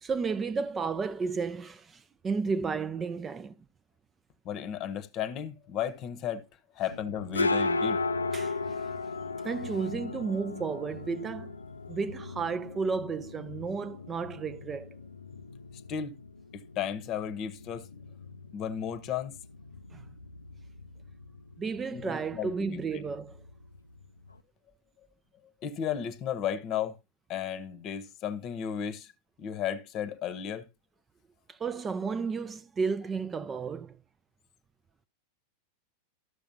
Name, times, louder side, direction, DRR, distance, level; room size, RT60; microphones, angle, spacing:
voice 1, 0.0-3.5 8.3-8.9 9.4-11.6 11.9-14.9 19.9-20.1 21.6-23.4 31.5-34.0, right 5 dB, 20° right, 0.4 m, -33 dB
voice 2, 4.4-6.4 6.7-8.0 15.9-16.1 16.5-18.0 18.5-19.4 21.9-23.0 25.6-27.0 27.3-29.1 29.4-30.7, left 9 dB, 35° left, 0.9 m, -34 dB
sound 1, 6.9-24.4, left 3 dB, 80° left, 0.4 m, -37 dB
13.0 x 6.5 x 2.7 m
figure-of-eight pair, 90°, 0 cm